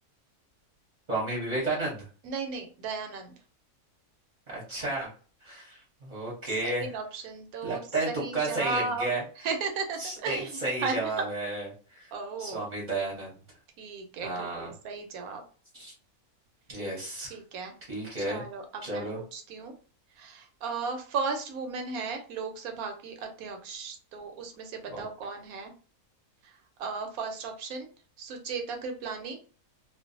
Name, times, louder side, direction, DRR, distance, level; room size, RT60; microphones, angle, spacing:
voice 1, 1.1-2.0 4.5-5.1 5.4-6.9 7.6-9.2 10.0-12.1 12.4-13.3 14.2-14.7 15.7-15.9 16.7-17.4 17.9-18.4 18.8-19.2 24.9-25.0, right 2 dB, 35° right, -5 dB, 0.7 m, -32 dB
voice 2, 2.2-3.3 6.6-9.2 9.4-11.2 12.1-12.6 13.8-15.4 17.2-17.7 18.2-19.7 20.2-25.7 26.4-26.5 26.8-27.9 28.2-29.4, right 4 dB, 75° right, 4 dB, 1.0 m, -35 dB
2.5 x 2.2 x 2.5 m, 0.39 s
omnidirectional pair, 1.6 m